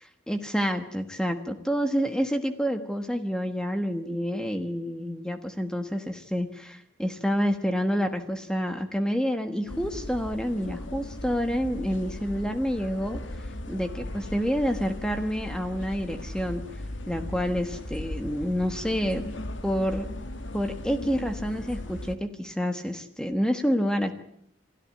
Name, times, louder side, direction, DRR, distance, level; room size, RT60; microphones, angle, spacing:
voice 1, 0.3-16.6 17.1-19.3 19.6-20.1 20.5-24.1, equal, 5° left, 8 dB, 1.2 m, -28 dB
sound 1, 9.7-22.2, left 1 dB, 80° left, 1.9 m, -37 dB
28.0 x 13.5 x 9.6 m, 0.74 s
head